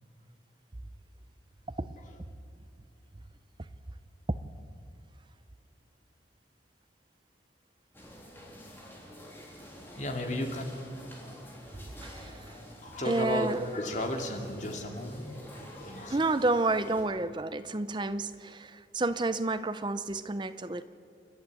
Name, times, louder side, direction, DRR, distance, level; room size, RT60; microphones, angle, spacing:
sound 1, 7.9-17.0, equal, 10° left, 3.2 m, -49 dB
voice 1, 10.0-10.6 12.8-16.2, left 1 dB, 40° left, 2.5 m, -34 dB
voice 2, 12.0-12.4 13.0-13.6 16.1-20.8, right 2 dB, 25° right, 0.6 m, -30 dB
29.0 x 11.5 x 8.4 m
head